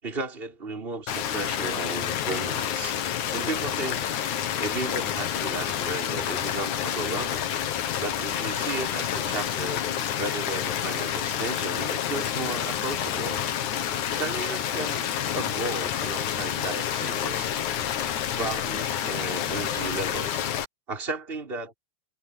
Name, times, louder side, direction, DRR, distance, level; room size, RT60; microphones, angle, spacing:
voice 1, 0.0-3.0 3.3-4.1 4.6-7.5 8.0-9.8 10.2-13.4 14.2-15.0 15.3-17.5 18.4-20.5 20.9-21.7, right 3 dB, 10° right, 5.7 m, -34 dB
sound 1, 1.1-20.6, left 10 dB, 85° left, 1.7 m, -29 dB
omnidirectional pair, 5.9 m